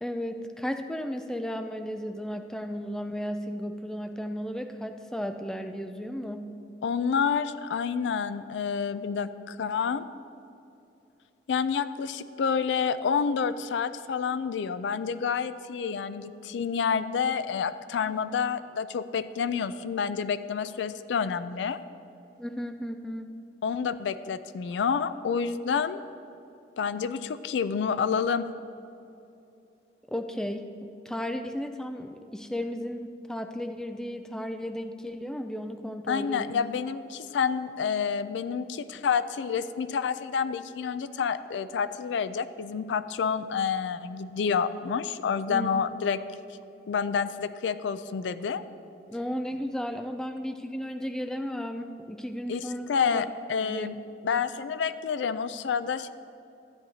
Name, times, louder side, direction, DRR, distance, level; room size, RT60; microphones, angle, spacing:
voice 1, 0.0-6.5 22.4-23.3 30.1-36.5 45.5-45.9 49.1-53.3 53.6-53.9 54.3-54.5, equal, 5° left, 6 dB, 0.3 m, -34 dB
voice 2, 6.8-10.0 11.5-21.8 23.6-26.0 26.8-28.5 36.1-46.2 46.9-48.6 52.5-54.0 54.2-56.1, left 6 dB, 85° left, 13 dB, 0.3 m, -29 dB
13.0 x 9.5 x 2.8 m, 2.8 s
head